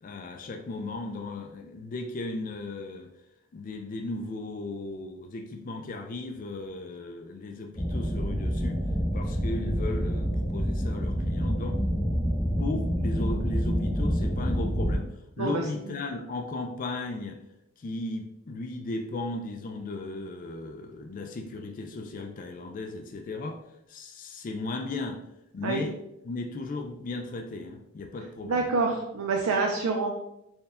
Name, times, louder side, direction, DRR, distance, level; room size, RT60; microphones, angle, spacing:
voice 1, 0.0-3.1 3.5-8.8 9.1-11.8 12.6-15.1 15.4-17.4 17.8-23.6 23.9-25.2 25.5-28.7, left 2 dB, 40° left, 4 dB, 0.3 m, -36 dB
sound 1, 7.7-15.0, equal, 25° left, 0.8 m, -27 dB
voice 2, 28.4-30.2, right 4 dB, 90° right, 0 dB, 0.5 m, -27 dB
4.3 x 2.2 x 3.5 m, 0.85 s
head